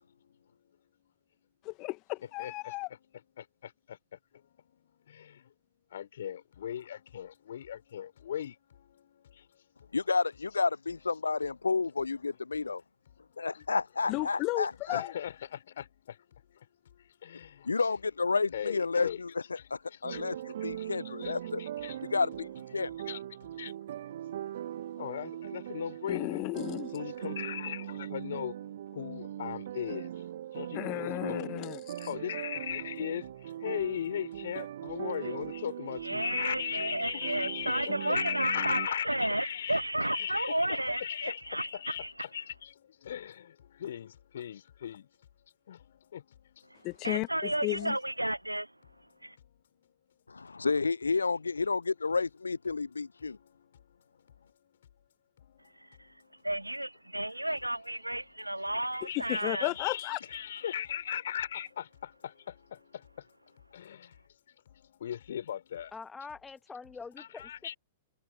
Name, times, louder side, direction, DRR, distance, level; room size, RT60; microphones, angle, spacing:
voice 1, 1.6-2.9 14.1-15.1 26.1-26.9 30.7-31.8 46.8-48.0 59.2-60.2, left 23 dB, 35° left, 2.2 m, -34 dB
voice 2, 2.4-5.5 5.9-9.6 13.2-13.7 14.9-17.9 18.5-19.2 19.5-22.1 23.0-23.7 24.0-26.4 26.9-31.5 32.0-45.1 45.7-46.8 49.1-49.5 49.8-49.9 53.2-53.7 55.4-56.4 57.4-57.5 58.4-58.8 59.1-63.3 63.7-64.2 64.5-65.9 67.2-67.7, left 9 dB, 60° left, 5.0 m, -39 dB
voice 3, 9.9-12.8 13.4-15.0 17.7-21.6 22.1-22.9 50.3-53.4, left 4 dB, 75° left, 0.5 m, -31 dB
sound 1, 20.0-38.9, right 11 dB, 55° right, 1.9 m, -40 dB
voice 4, 36.0-41.7 42.0-42.1 47.0-48.7 49.2-49.4 55.8-55.9 56.4-59.7, right 1 dB, 90° right, 0.8 m, -32 dB
voice 5, 65.9-67.5, left 4 dB, 10° left, 1.9 m, -44 dB
figure-of-eight pair, 105°, 0 cm